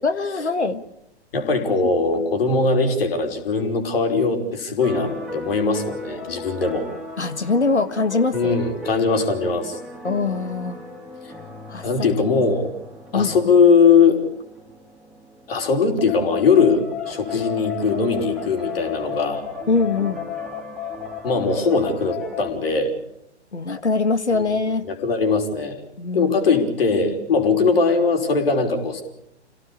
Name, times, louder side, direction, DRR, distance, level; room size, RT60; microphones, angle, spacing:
voice 1, 0.0-0.8 7.2-8.6 10.0-10.8 11.7-11.9 13.1-13.3 19.7-20.2 23.5-24.9 26.0-26.4, left 3 dB, 80° left, 11 dB, 1.7 m, -22 dB
voice 2, 1.3-6.9 8.3-9.8 11.2-11.3 11.8-12.7 13.1-14.2 15.5-19.4 21.2-22.9 24.3-24.4 24.9-25.8 26.1-29.0, left 4 dB, 55° left, 5 dB, 5.5 m, -20 dB
sound 1, 4.8-22.5, left 4 dB, ahead, 3.4 m, -35 dB
28.0 x 17.5 x 8.7 m, 0.79 s
figure-of-eight pair, 110°, 34 cm